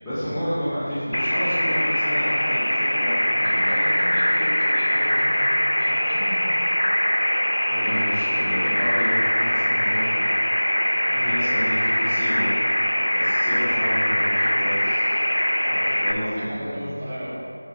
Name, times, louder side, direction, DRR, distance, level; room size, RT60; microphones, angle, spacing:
voice 1, 0.0-3.7 7.7-10.3 11.1-12.5 13.1-15.1 15.6-16.8, equal, 5° left, -18 dB, 0.9 m, -30 dB
sound 1, 1.1-16.1, equal, 90° left, 0.6 m, -22 dB
voice 2, 3.1-6.6 14.3-14.7 16.2-17.3, equal, 25° right, -7 dB, 1.4 m, -35 dB
6.4 x 4.1 x 5.3 m, 2.4 s
figure-of-eight pair, 170°, 0 cm